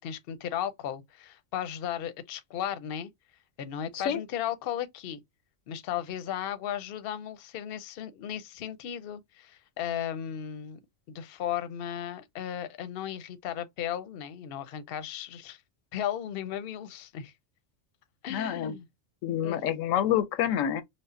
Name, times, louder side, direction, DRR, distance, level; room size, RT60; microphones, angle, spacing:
voice 1, 0.0-3.1 3.6-5.2 5.7-10.8 11.1-15.6 15.9-17.3 18.2-18.8 19.4-19.6, left 10 dB, 60° left, 0.7 m, -35 dB
voice 2, 18.3-18.7 19.2-20.8, left 10 dB, 90° left, 1.0 m, -27 dB
5.2 x 2.0 x 2.5 m
omnidirectional pair, 1.3 m